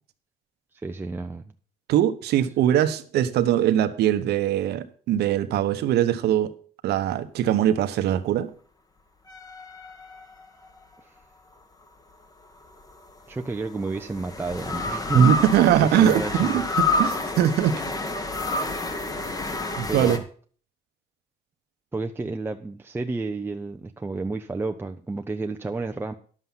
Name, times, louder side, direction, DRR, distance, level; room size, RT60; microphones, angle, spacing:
voice 1, 0.7-1.5 11.0-11.2 13.3-16.6 19.9-20.2 21.9-26.1, right 3 dB, 15° right, 0.6 m, -31 dB
voice 2, 1.9-6.5 6.8-8.5 15.1-17.8 19.8-20.2, right 10 dB, 75° right, 1.1 m, -21 dB
sound 1, 9.3-10.8 12.7-20.2, left 3 dB, 20° left, 1.4 m, -29 dB
11.0 x 7.6 x 5.7 m
cardioid pair, 110°, 17 cm